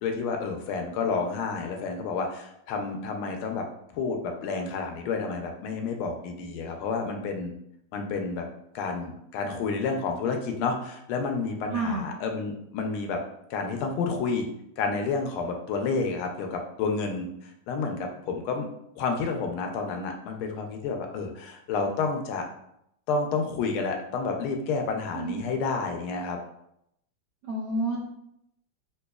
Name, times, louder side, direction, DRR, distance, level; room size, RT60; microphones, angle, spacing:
voice 1, 0.0-3.7 3.9-7.5 7.9-8.4 8.7-13.2 13.5-14.5 14.8-18.7 19.0-22.4 23.1-26.4, left 4 dB, 90° left, 4 dB, 1.5 m, -30 dB
voice 2, 11.7-12.1 24.6-24.7 25.1-25.4 27.4-28.0, right 2 dB, 75° right, -3 dB, 0.9 m, -29 dB
3.9 x 2.7 x 2.3 m, 0.77 s
omnidirectional pair, 2.3 m